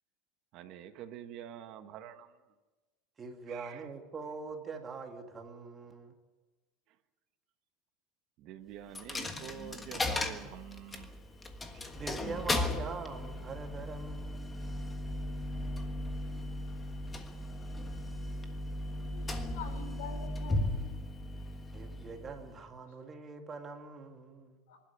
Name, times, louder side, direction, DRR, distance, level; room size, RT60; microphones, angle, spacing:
voice 1, 0.5-2.3 3.5-3.7 8.4-11.1, right 11 dB, 45° right, 1.4 m, -46 dB
voice 2, 3.2-6.2 11.9-14.7 21.7-24.6, right 4 dB, 20° right, 2.4 m, -43 dB
Coin (dropping), 8.9-22.7, left 2 dB, 10° left, 1.4 m, -37 dB
voice 3, 19.0-20.9 24.7-24.8, left 6 dB, 85° left, 3.6 m, -46 dB
25.5 x 12.0 x 9.4 m
supercardioid pair, 160°, 0 cm